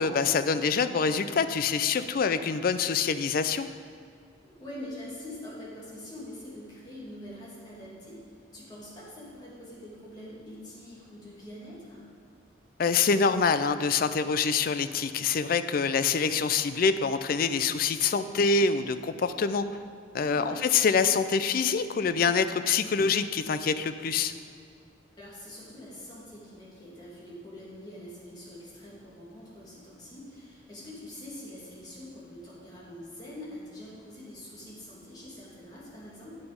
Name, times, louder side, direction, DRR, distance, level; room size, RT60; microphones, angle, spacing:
voice 1, 0.0-3.7 12.8-19.7 20.1-24.3, left 5 dB, 50° left, 11 dB, 0.4 m, -25 dB
voice 2, 4.4-12.0 20.2-20.8 25.2-36.4, left 1 dB, 20° left, -8 dB, 2.6 m, -44 dB
8.8 x 6.9 x 5.2 m, 2.3 s
head